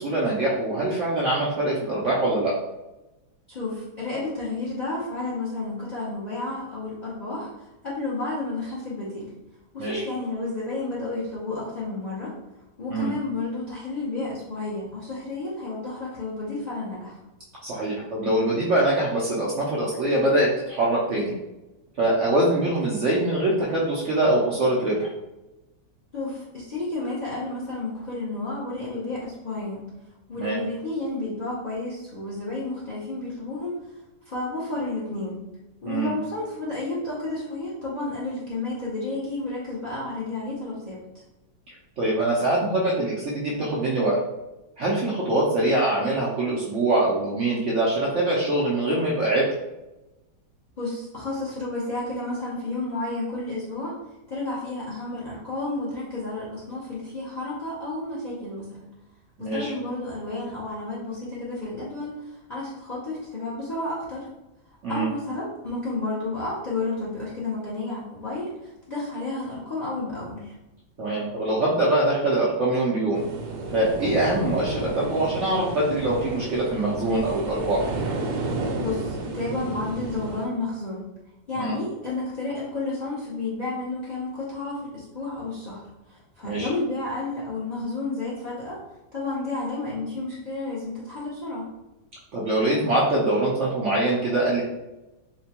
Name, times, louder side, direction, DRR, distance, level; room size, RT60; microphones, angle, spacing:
voice 1, 0.0-2.5 9.8-10.0 12.9-13.1 17.6-21.3 22.0-25.1 30.4-30.6 35.9-36.1 41.7-44.2 44.8-49.5 59.4-59.7 64.8-65.1 71.0-73.2 73.7-77.8 81.6-81.8 86.4-86.7 92.3-94.6, right 1 dB, 65° right, -6 dB, 0.7 m, -23 dB
voice 2, 3.5-7.5 7.8-9.3 9.7-12.3 12.8-17.2 26.1-29.9 30.3-33.7 34.2-35.4 35.8-41.0 50.8-53.9 54.3-58.9 59.4-64.3 64.9-70.5 78.8-81.0 81.5-88.8 89.1-91.7, left 2 dB, 70° left, -7 dB, 0.4 m, -31 dB
sound 1, 73.1-80.4, right 2 dB, 80° right, 1.2 m, -31 dB
4.2 x 2.2 x 2.8 m, 0.98 s
omnidirectional pair, 1.9 m